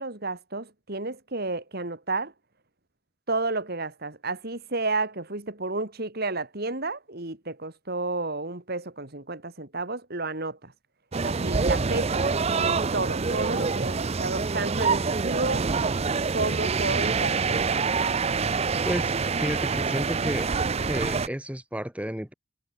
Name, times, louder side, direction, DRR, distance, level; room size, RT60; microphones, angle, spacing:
voice 1, 0.0-2.3 3.3-10.7 11.2-15.7 16.3-17.8, right 3 dB, 50° right, 3.0 m, -31 dB
sound 1, 11.1-21.3, right 4 dB, 30° right, 0.5 m, -26 dB
voice 2, 18.8-20.5 20.8-22.3, equal, 5° right, 1.7 m, -32 dB
head